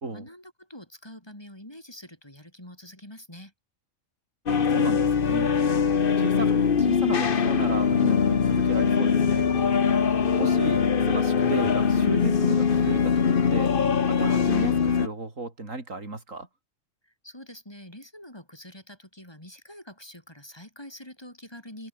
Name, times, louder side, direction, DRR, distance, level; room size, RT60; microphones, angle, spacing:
voice 1, 0.1-3.5 17.0-21.9, left 1 dB, 20° left, 4.5 m, -45 dB
sound 1, 4.5-15.1, left 6 dB, 45° left, 1.2 m, -22 dB
voice 2, 4.5-5.5 6.2-9.5 10.4-13.7 14.1-16.5, right 3 dB, 85° right, 4.4 m, -34 dB
omnidirectional pair, 1.3 m